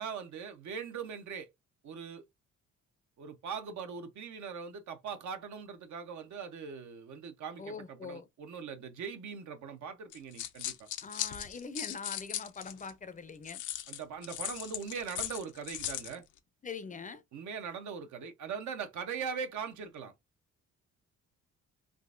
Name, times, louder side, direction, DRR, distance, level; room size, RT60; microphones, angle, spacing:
voice 1, 0.0-1.5 1.8-2.2 3.2-10.9 13.9-16.2 17.3-20.1, right 6 dB, 70° right, 0.8 m, -41 dB
voice 2, 7.6-8.3 11.0-13.6 16.6-17.2, left 4 dB, 25° left, 0.5 m, -43 dB
sound 1, 10.1-12.9 13.5-16.2, left 12 dB, 80° left, 0.6 m, -38 dB
3.7 x 2.5 x 2.5 m
cardioid pair, 90°, 30 cm